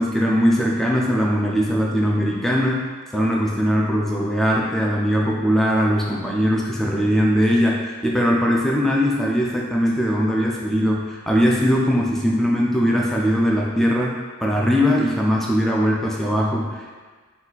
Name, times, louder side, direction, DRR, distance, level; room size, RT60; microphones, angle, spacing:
voice 1, 0.0-17.0, equal, ahead, -3 dB, 0.3 m, -20 dB
4.1 x 2.3 x 4.0 m, 1.4 s
head